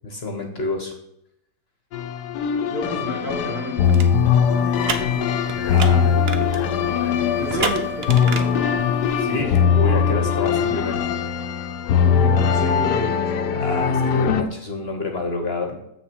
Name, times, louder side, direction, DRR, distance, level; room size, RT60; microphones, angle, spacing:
voice 1, 0.0-0.9 5.6-6.1 7.5-7.7 9.2-11.0 13.5-15.8, left 3 dB, 40° left, 4 dB, 1.2 m, -28 dB
sound 1, 1.9-14.4, left 7 dB, 80° left, 1.3 m, -20 dB
voice 2, 2.7-5.1 5.5-6.2 7.4-8.7 12.2-13.6, equal, 65° right, 0 dB, 2.5 m, -32 dB
sound 2, 3.8-9.4, right 5 dB, 45° right, 0.9 m, -32 dB
7.5 x 6.6 x 4.6 m, 0.80 s
omnidirectional pair, 1.8 m